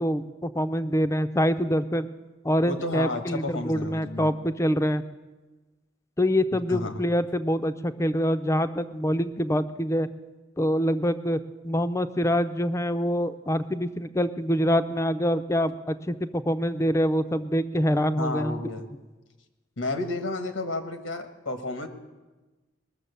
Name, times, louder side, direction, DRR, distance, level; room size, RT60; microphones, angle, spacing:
voice 1, 0.0-2.1 2.4-5.0 6.2-10.1 10.6-18.6, equal, 15° left, 12 dB, 0.4 m, -25 dB
voice 2, 2.6-4.3 6.7-7.0 18.2-18.9 19.8-21.9, left 2 dB, 90° left, 7 dB, 1.3 m, -31 dB
20.5 x 6.8 x 6.8 m, 1.2 s
head